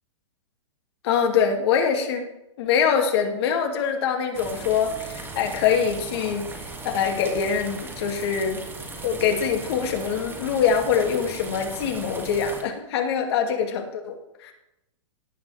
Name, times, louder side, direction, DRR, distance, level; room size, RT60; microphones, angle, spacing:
voice 1, 1.0-2.3 2.6-8.6 9.0-14.5, left 7 dB, 55° left, 3 dB, 2.5 m, -24 dB
sound 1, 4.3-12.6, right 3 dB, 15° right, 2.5 m, -38 dB
17.5 x 9.2 x 3.5 m, 0.88 s
hypercardioid pair, 115°, 16 cm